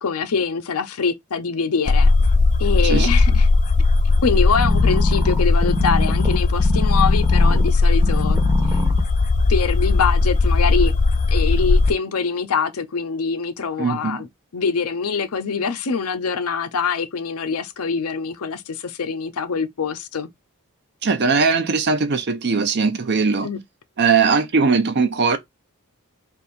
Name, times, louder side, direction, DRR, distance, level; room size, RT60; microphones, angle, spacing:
voice 1, 0.0-2.1 2.6-3.5 4.2-8.4 9.5-10.9 11.3-14.3 14.5-20.3 23.4-23.6, left 5 dB, 85° left, 0.6 m, -24 dB
sound 1, 1.9-11.9, left 3 dB, 35° left, 0.4 m, -17 dB
sound 2, 4.5-7.7 8.0-9.0 9.6-9.7, left 1 dB, 15° right, 0.7 m, -26 dB
voice 2, 13.8-14.2 21.0-23.5 24.0-25.4, right 5 dB, 50° right, 0.6 m, -19 dB
3.4 x 2.6 x 4.2 m
head